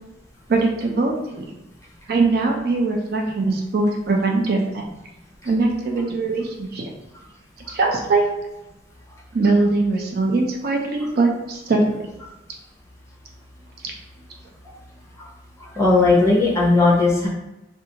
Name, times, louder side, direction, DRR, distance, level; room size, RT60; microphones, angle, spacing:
voice 1, 0.5-1.4 2.1-4.9 5.4-6.9 7.7-8.3 9.3-12.0, right 3 dB, 55° right, 1 dB, 0.4 m, -21 dB
voice 2, 15.8-17.3, left 3 dB, 15° left, -5 dB, 0.7 m, -16 dB
2.4 x 2.3 x 2.8 m, 0.97 s
head